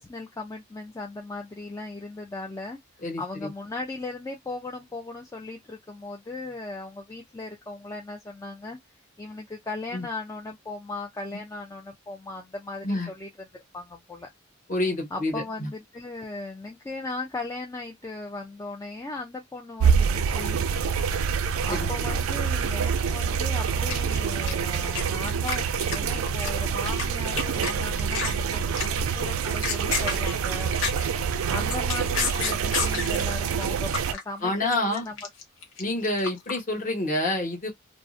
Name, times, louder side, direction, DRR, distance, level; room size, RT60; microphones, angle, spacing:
voice 1, 0.0-8.8 9.2-13.5 13.7-14.3 15.1-20.9 21.6-30.8 31.5-35.2, left 2 dB, 15° left, 0.3 m, -37 dB
voice 2, 3.0-3.5 9.9-10.1 12.8-13.1 14.7-15.7 21.7-21.8 34.4-35.1 35.8-37.7, left 1 dB, 40° left, 1.1 m, -28 dB
sound 1, 19.8-34.1, right 6 dB, 90° right, 0.3 m, -26 dB
sound 2, 23.9-25.0 25.3-25.6 25.8-27.1 27.4-27.7 28.0-28.4 28.8-29.1 29.4-31.2 31.5-33.2 33.6-34.2 34.5-36.6, left 5 dB, 70° left, 0.7 m, -30 dB
2.5 x 2.0 x 2.4 m
head